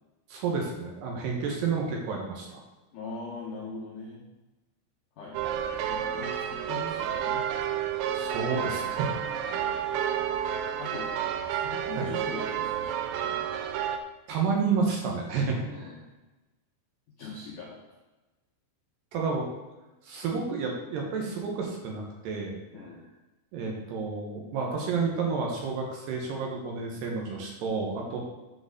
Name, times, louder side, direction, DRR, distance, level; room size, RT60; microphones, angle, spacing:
voice 1, 0.3-2.6 8.2-9.1 9.4-9.7 11.9-12.1 14.3-16.0 19.1-19.5 20.0-22.6 23.5-28.2, right 5 dB, 70° right, 0 dB, 2.9 m, -30 dB
voice 2, 2.9-4.2 5.2-7.5 9.2-10.0 10.8-11.2 11.5-13.5 15.5-16.1 17.2-17.8 22.7-23.0 28.1-28.2, left 3 dB, 90° left, -3 dB, 1.8 m, -41 dB
sound 1, 5.3-14.0, right 9 dB, 85° right, 2.5 m, -30 dB
10.0 x 5.0 x 6.7 m, 1.1 s
omnidirectional pair, 5.9 m